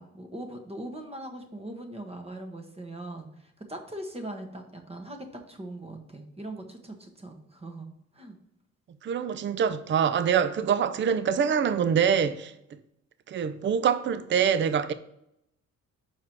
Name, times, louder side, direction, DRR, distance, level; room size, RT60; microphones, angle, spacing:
voice 1, 0.0-7.9 8.1-8.4, right 1 dB, 20° right, 1.3 m, -40 dB
voice 2, 9.0-12.5 13.3-14.9, right 7 dB, 40° right, 0.5 m, -25 dB
6.0 x 4.7 x 4.6 m
cardioid pair, 90°, 30 cm